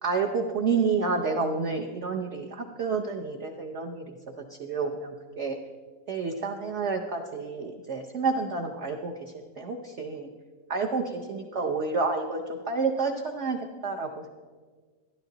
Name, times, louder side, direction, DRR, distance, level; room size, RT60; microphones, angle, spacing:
voice 1, 0.0-4.1 4.5-5.6 6.1-10.3 10.7-14.3, right 4 dB, 60° right, 2 dB, 0.7 m, -29 dB
12.5 x 11.5 x 3.9 m, 1.5 s
omnidirectional pair, 2.0 m